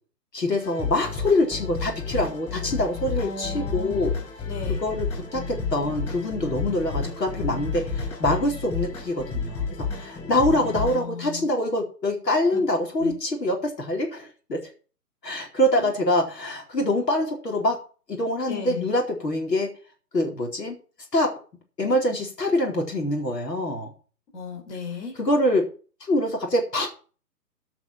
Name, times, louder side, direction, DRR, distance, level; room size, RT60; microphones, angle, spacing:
voice 1, 0.3-4.1 4.8-14.7 15.2-17.8 18.1-19.7 20.1-20.8 21.1-21.3 21.8-23.9 25.2-25.6 26.0-26.9, left 1 dB, 80° left, 1 dB, 4.5 m, -25 dB
sound 1, 0.6-11.0, left 4 dB, 15° left, 5.5 m, -31 dB
voice 2, 3.2-4.1 4.5-4.8 10.6-11.4 12.5-12.6 13.0-13.2 15.7-15.9 18.5-18.9 24.3-25.2, left 4 dB, 45° left, 2 dB, 4.5 m, -36 dB
14.0 x 6.1 x 6.0 m, 0.38 s
hypercardioid pair, 145°, 48 cm